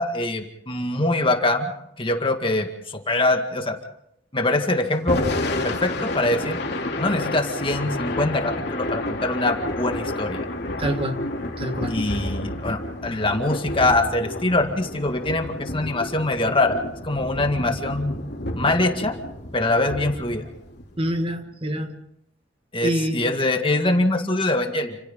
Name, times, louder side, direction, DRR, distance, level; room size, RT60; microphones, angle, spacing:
voice 1, 0.0-1.7 2.0-3.8 4.3-5.2 5.6-6.6 7.0-10.5 11.9-18.2 18.5-19.1 19.5-20.4 22.7-25.0, left 2 dB, 30° left, 5 dB, 2.0 m, -23 dB
Thunder / Rain, 4.9-21.2, left 1 dB, 60° left, 3.1 m, -30 dB
voice 2, 10.8-11.3 11.6-12.0 21.0-22.0 22.8-23.3, equal, 30° right, 6 dB, 1.6 m, -26 dB
30.0 x 27.0 x 3.8 m, 0.76 s
head